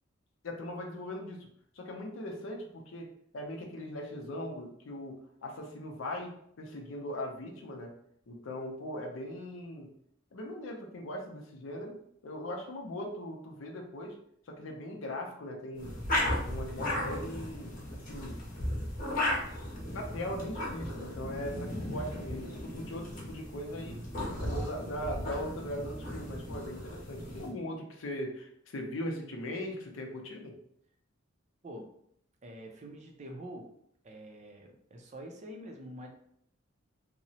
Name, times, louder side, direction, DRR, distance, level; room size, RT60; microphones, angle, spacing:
voice 1, 0.4-1.5 1.7-3.1 3.3-7.9 8.3-9.9 10.3-14.2 14.5-15.9 16.4-18.4 19.9-23.9 24.4-30.5, left 1 dB, 70° left, 2 dB, 0.5 m, -40 dB
sound 1, 15.7-27.5, left 1 dB, 45° left, 0.8 m, -36 dB
voice 2, 32.4-33.7 34.0-36.1, equal, 35° right, 2 dB, 0.4 m, -45 dB
2.8 x 2.0 x 2.7 m, 0.69 s
head